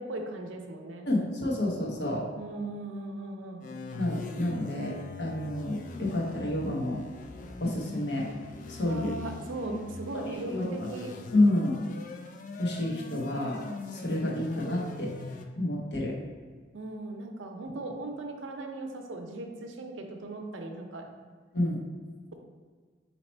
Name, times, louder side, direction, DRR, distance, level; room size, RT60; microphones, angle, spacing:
voice 1, 0.0-1.1 2.3-3.6 8.8-11.1 16.7-21.1, right 2 dB, 85° right, 4 dB, 0.6 m, -38 dB
voice 2, 1.1-2.3 3.9-7.0 7.6-8.3 8.7-9.1 10.1-10.9 11.3-11.8 12.6-13.6 13.9-15.1 15.6-16.2 21.5-21.8, left 1 dB, 60° left, -2 dB, 0.9 m, -29 dB
sound 1, 3.6-15.4, left 3 dB, 40° left, 0.3 m, -42 dB
4.2 x 2.9 x 4.3 m, 1.5 s
head